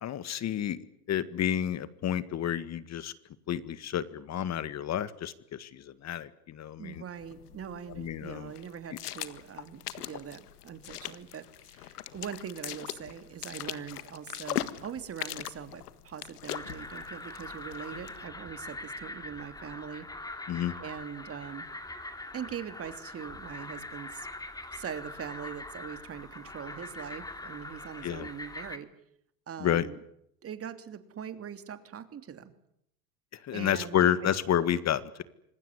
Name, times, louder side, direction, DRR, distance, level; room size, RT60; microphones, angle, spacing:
voice 1, 0.0-0.8 1.1-3.1 3.5-7.0 8.0-8.5 20.5-20.7 28.0-28.3 29.6-29.9 33.4-35.2, left 10 dB, 35° left, 15 dB, 1.8 m, -30 dB
voice 2, 6.8-20.1 20.8-21.7 22.3-24.3 24.7-28.9 29.5-30.0 30.4-32.5 33.5-34.4, right 8 dB, 30° right, 10 dB, 3.1 m, -42 dB
sound 1, 7.2-18.2, left 12 dB, 90° left, 1.7 m, -41 dB
sound 2, 16.5-28.8, left 2 dB, 10° left, 2.9 m, -43 dB
26.5 x 19.5 x 9.8 m, 0.75 s
hypercardioid pair, 105°, 45 cm